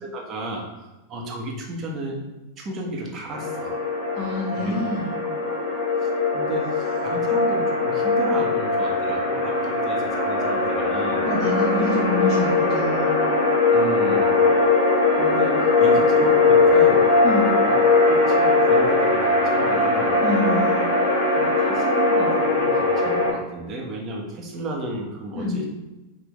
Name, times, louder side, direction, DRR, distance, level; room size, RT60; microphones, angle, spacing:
voice 1, 0.0-3.8 4.5-4.7 5.0-5.7 6.0-11.3 13.7-14.4 15.2-17.0 17.6-20.2 21.3-25.7, right 1 dB, 30° right, -1 dB, 1.1 m, -33 dB
sound 1, 3.3-23.3, left 3 dB, 50° left, 1.2 m, -20 dB
voice 2, 4.1-5.1 11.2-13.2 17.2-17.5 20.2-20.8 25.4-25.6, left 2 dB, 15° left, -6 dB, 0.9 m, -26 dB
6.0 x 2.6 x 3.4 m, 1.1 s
figure-of-eight pair, 90°, 0 cm